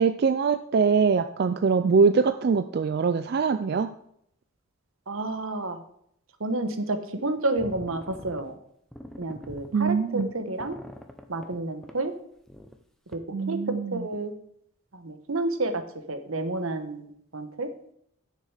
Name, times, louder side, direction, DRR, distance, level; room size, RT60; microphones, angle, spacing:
voice 1, 0.0-3.9 9.7-10.3 13.3-14.0, right 5 dB, 50° right, 10 dB, 0.3 m, -23 dB
voice 2, 5.1-5.8 6.4-8.6 9.2-10.8 11.3-12.1 13.1-13.2 13.5-13.6 13.9-14.3 14.9-15.8 16.1-17.1 17.3-17.7, right 2 dB, 80° right, 8 dB, 1.2 m, -30 dB
sound 1, 7.3-7.4 7.6-8.4 8.9-11.6 11.8-12.0 12.5-12.8 13.1-13.2, equal, ahead, 0.6 m, -44 dB
9.4 x 6.7 x 4.9 m, 0.70 s
head